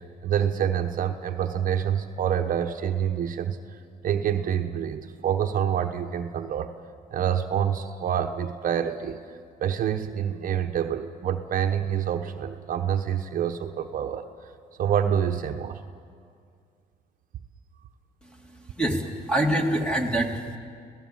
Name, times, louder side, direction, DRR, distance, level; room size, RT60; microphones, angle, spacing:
voice 1, 0.0-6.7 7.1-14.3 14.8-15.8, right 9 dB, 55° right, 6 dB, 1.1 m, -27 dB
voice 2, 18.2-20.6, right 1 dB, 5° left, 3 dB, 2.7 m, -26 dB
26.0 x 17.5 x 7.7 m, 2.2 s
cardioid pair, 110°, 17 cm